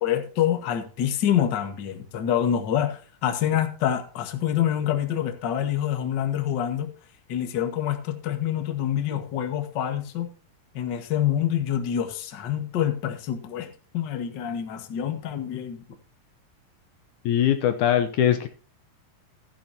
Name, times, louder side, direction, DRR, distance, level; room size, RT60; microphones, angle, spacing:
voice 1, 0.0-6.9 7.3-10.3 10.7-15.8, left 10 dB, 45° left, 6 dB, 1.6 m, -26 dB
voice 2, 17.2-18.5, left 10 dB, 75° left, 7 dB, 2.1 m, -21 dB
15.0 x 10.0 x 2.8 m, 0.38 s
omnidirectional pair, 3.8 m